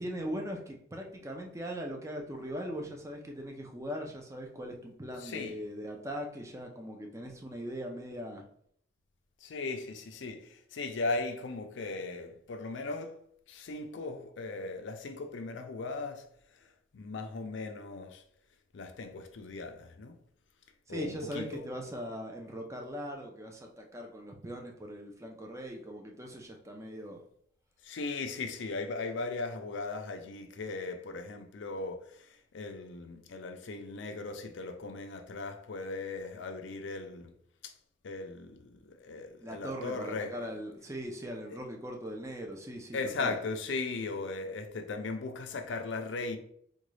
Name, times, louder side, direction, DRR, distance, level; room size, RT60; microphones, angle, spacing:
voice 1, 0.0-8.4 20.9-27.2 39.4-43.3, equal, 15° right, 0.5 m, -40 dB
voice 2, 5.2-5.6 9.4-13.2 13.5-16.2 16.5-16.7 16.9-18.2 18.7-20.2 20.9-21.6 27.8-37.3 37.6-37.7 38.0-40.5 42.9-46.4, left 3 dB, 70° left, 0.5 m, -38 dB
3.7 x 2.3 x 3.1 m
head